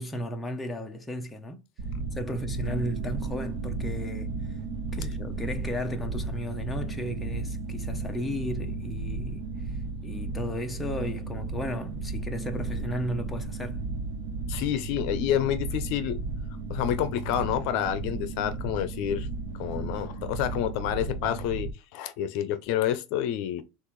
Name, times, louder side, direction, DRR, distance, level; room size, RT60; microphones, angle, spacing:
voice 1, 0.0-1.6 2.1-4.3 4.9-9.8 10.0-13.8, equal, 10° left, 0.8 m, -34 dB
sound 1, 1.8-21.7, right 3 dB, 65° right, 0.9 m, -34 dB
voice 2, 14.5-16.2 16.7-19.3 19.6-23.6, left 11 dB, 60° left, 0.6 m, -28 dB
6.4 x 2.5 x 3.1 m
supercardioid pair, 130°, 0 cm